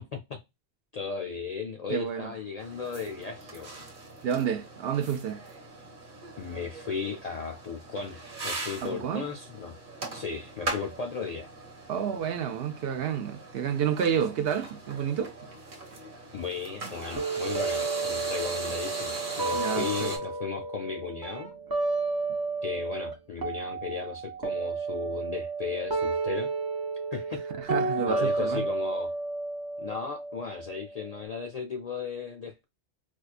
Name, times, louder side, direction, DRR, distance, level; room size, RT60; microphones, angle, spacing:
voice 1, 0.9-3.8 6.4-8.2 8.4-9.8 10.1-11.5 16.3-21.5 22.6-26.5 27.1-27.4 28.1-29.1 29.8-32.6, left 5 dB, 60° left, 0.4 m, -36 dB
voice 2, 1.9-2.3 4.2-5.4 8.8-9.2 11.9-15.3 19.5-20.1 27.6-28.6, right 8 dB, 65° right, 0.7 m, -29 dB
sound 1, 2.6-20.2, right 2 dB, 50° right, 1.1 m, -40 dB
sound 2, 17.2-23.1 23.4-31.2, right 3 dB, 25° right, 0.5 m, -32 dB
4.5 x 2.3 x 2.4 m
omnidirectional pair, 1.1 m